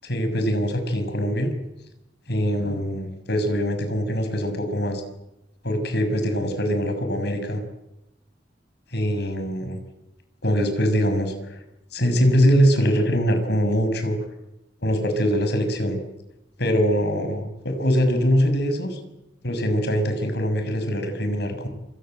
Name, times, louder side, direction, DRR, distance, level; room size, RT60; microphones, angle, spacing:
voice 1, 0.0-1.5 2.3-5.0 5.6-7.6 8.9-9.8 10.4-11.6 11.9-14.2 14.8-16.0 16.6-19.0 19.4-21.7, equal, 65° left, 7 dB, 6.4 m, -23 dB
28.0 x 25.5 x 7.9 m, 0.92 s
head